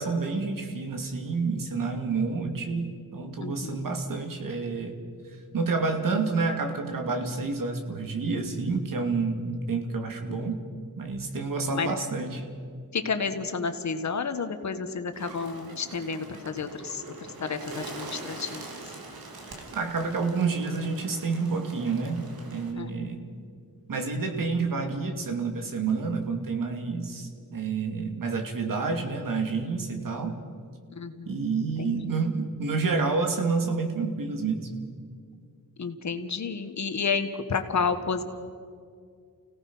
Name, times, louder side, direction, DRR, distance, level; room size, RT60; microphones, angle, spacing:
voice 1, 0.0-5.0 5.5-10.6 11.0-12.4 19.7-23.2 23.9-30.4 31.3-34.7, right 4 dB, 65° right, 4 dB, 2.7 m, -29 dB
voice 2, 3.4-4.0 10.3-10.5 11.7-11.9 12.9-18.7 22.7-23.4 30.9-31.3 31.8-32.2 35.8-38.2, left 5 dB, 50° left, 8 dB, 1.5 m, -31 dB
Bird, 15.1-22.7, right 3 dB, 85° right, 2.9 m, -43 dB
29.5 x 17.5 x 5.6 m, 2.1 s
wide cardioid pair, 135°, 35 cm